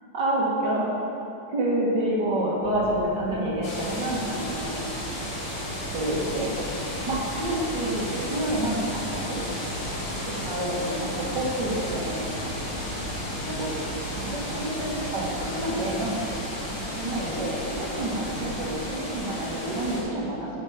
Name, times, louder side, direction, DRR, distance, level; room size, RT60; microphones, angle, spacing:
voice 1, 0.1-0.9 1.5-4.9 5.9-6.5 7.1-9.4 10.2-12.3 13.4-13.7 14.1-16.2 16.9-20.5, right 1 dB, 55° right, -5 dB, 2.6 m, -28 dB
sound 1, 2.6-18.9, right 2 dB, 35° right, 2.2 m, -40 dB
sound 2, 3.6-20.0, left 1 dB, 75° left, 2.6 m, -34 dB
11.5 x 6.4 x 5.1 m, 2.7 s
omnidirectional pair, 2.3 m